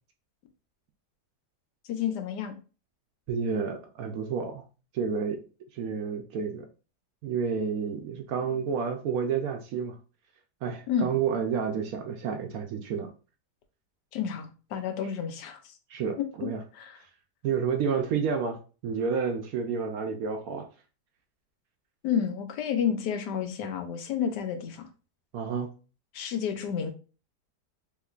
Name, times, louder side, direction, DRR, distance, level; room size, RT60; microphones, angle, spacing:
voice 1, 1.9-2.5 10.9-11.1 14.1-15.8 16.2-17.0 22.0-24.9 26.1-26.9, left 8 dB, 85° left, 1.2 m, -30 dB
voice 2, 3.3-4.6 4.9-5.4 5.7-6.7 7.2-10.0 10.6-13.1 15.9-16.6 17.4-20.7 25.3-25.7, right 6 dB, 70° right, 0.9 m, -30 dB
3.6 x 3.0 x 2.3 m
omnidirectional pair, 1.8 m